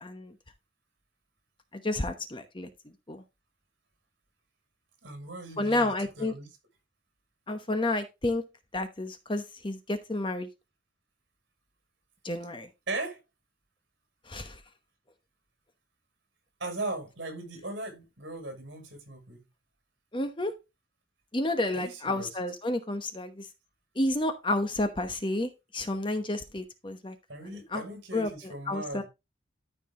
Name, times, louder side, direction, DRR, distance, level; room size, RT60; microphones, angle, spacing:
voice 1, 0.0-0.3 1.7-2.7 3.1-3.2 5.6-6.3 7.5-8.4 8.7-10.5 12.2-12.7 14.3-14.6 20.1-20.5 21.3-23.5 24.0-27.1 27.7-27.8 28.1-28.3 28.7-29.0, left 2 dB, 25° left, 1.0 m, -30 dB
voice 2, 5.0-6.5 12.9-13.2 16.6-19.4 21.7-22.3 27.3-29.0, right 2 dB, 60° right, 6.1 m, -38 dB
13.0 x 4.9 x 3.8 m
head